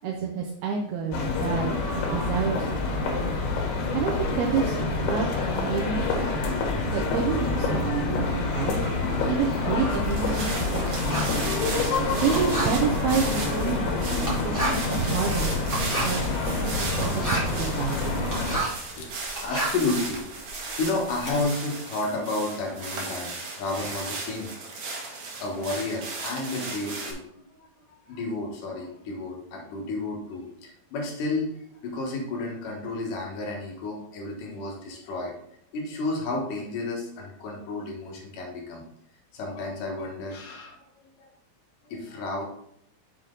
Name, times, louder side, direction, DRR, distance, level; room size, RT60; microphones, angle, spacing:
voice 1, 0.0-3.3 3.7-5.3 5.6-6.5 6.9-8.9 9.3-11.6 12.2-15.5 16.0-16.2 16.5-18.3, right 6 dB, 80° right, 0 dB, 2.5 m, -29 dB
sound 1, 1.1-18.6, left 3 dB, 85° left, 3.3 m, -27 dB
Writing, 8.7-18.9 19.2-21.4, right 2 dB, 5° right, 1.7 m, -33 dB
sound 2, 9.9-27.1, right 3 dB, 60° right, 2.5 m, -36 dB
voice 2, 19.4-24.5 25.4-35.3 35.7-38.8 39.3-41.3 41.8-42.4, left 2 dB, 60° left, 0 dB, 2.6 m, -32 dB
6.6 x 5.9 x 3.8 m, 0.72 s
omnidirectional pair, 4.6 m